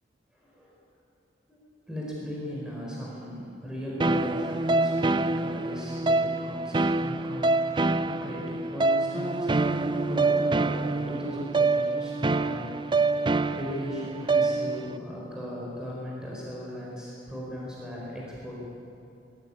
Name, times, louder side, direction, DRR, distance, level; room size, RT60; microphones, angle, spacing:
voice 1, 0.3-0.8 1.5-1.6 1.9-12.7 13.5-18.6, equal, 5° right, -5 dB, 4.5 m, -37 dB
sound 1, 4.0-15.0, right 3 dB, 25° right, 0.5 m, -26 dB
20.5 x 14.5 x 9.8 m, 2.7 s
head